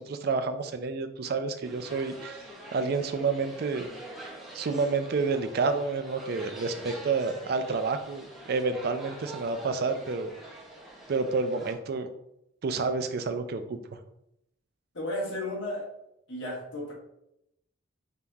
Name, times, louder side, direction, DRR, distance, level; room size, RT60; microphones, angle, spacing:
voice 1, 0.0-2.4 2.7-3.9 4.5-10.3 11.1-12.1 12.6-13.8, right 4 dB, 50° right, 9 dB, 0.3 m, -29 dB
nyc esb ticketwindow, 1.6-11.7, right 1 dB, ahead, 0.7 m, -45 dB
voice 2, 14.9-15.8 16.3-16.9, left 1 dB, 65° left, -3 dB, 1.4 m, -33 dB
5.2 x 2.8 x 2.3 m, 0.80 s
head